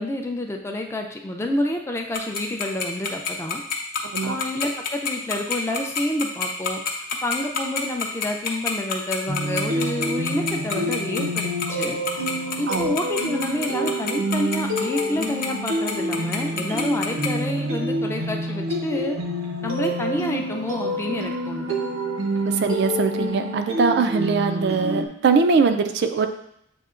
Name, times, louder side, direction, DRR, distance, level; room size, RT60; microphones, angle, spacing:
voice 1, 0.0-3.6 4.2-6.8 7.2-12.0 12.6-19.2 19.6-21.7, left 1 dB, 15° left, 2 dB, 0.4 m, -28 dB
Tick-tock, 2.1-17.3, left 6 dB, 50° left, 0.7 m, -26 dB
sound 1, 9.3-25.1, equal, 90° right, 0.8 m, -27 dB
voice 2, 22.6-26.3, right 5 dB, 60° right, 7 dB, 0.4 m, -21 dB
7.7 x 2.8 x 2.4 m, 0.74 s
head